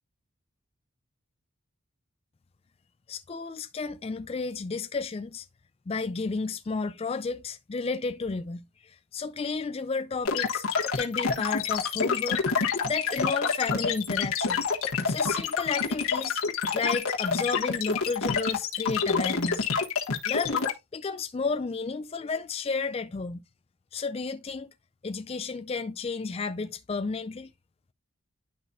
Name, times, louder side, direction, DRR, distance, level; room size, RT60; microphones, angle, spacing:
voice 1, 3.1-5.5 5.9-10.6 10.9-12.4 12.8-14.7 15.0-16.4 16.7-19.7 20.3-23.4 23.9-24.7 25.0-27.5, left 4 dB, 25° left, 0.3 m, -32 dB
sound 1, 10.2-20.7, left 5 dB, 85° left, 1.4 m, -27 dB
11.0 x 4.1 x 2.4 m
head